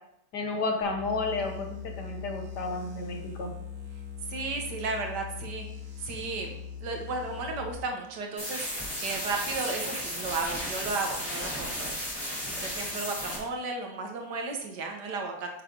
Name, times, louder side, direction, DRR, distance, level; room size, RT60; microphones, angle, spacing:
voice 1, 0.3-3.5, left 3 dB, 80° left, 3 dB, 1.8 m, -32 dB
sound 1, 0.8-7.7, left 7 dB, 65° right, 1.8 m, -41 dB
voice 2, 4.3-5.7 6.0-8.7 9.0-11.9 12.6-15.5, right 3 dB, 85° right, 2 dB, 1.7 m, -34 dB
sound 2, 8.4-13.4, equal, 20° left, 2.7 m, -34 dB
7.3 x 5.1 x 4.5 m, 0.79 s
omnidirectional pair, 1.8 m